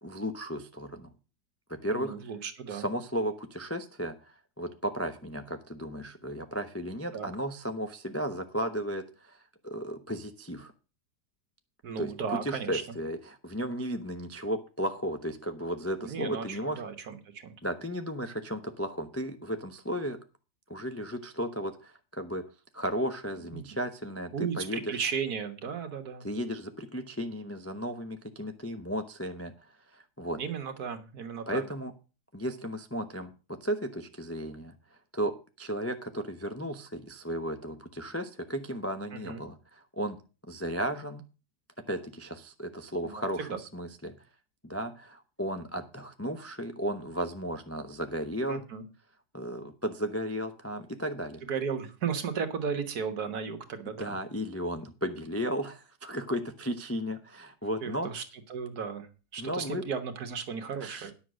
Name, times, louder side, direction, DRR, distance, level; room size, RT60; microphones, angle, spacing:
voice 1, 0.0-1.1 1.7-2.2 2.7-10.7 12.0-12.1 12.4-16.8 17.6-20.2 20.7-22.4 22.7-24.9 26.2-29.5 29.9-30.4 31.5-31.9 32.3-34.7 35.1-40.2 40.5-41.2 41.9-44.1 44.6-48.6 49.3-51.4 54.0-58.1 59.4-59.8 60.8-61.1, equal, 20° left, 7 dB, 0.4 m, -34 dB
voice 2, 1.9-2.9 7.1-7.3 11.8-12.8 16.0-17.5 23.5-23.6 24.3-26.3 30.4-31.6 39.1-39.4 43.0-43.6 48.5-48.8 51.4-54.2 57.8-58.2 58.5-61.1, right 6 dB, 65° right, 8 dB, 1.8 m, -35 dB
10.0 x 6.3 x 6.3 m, 0.33 s
omnidirectional pair, 1.8 m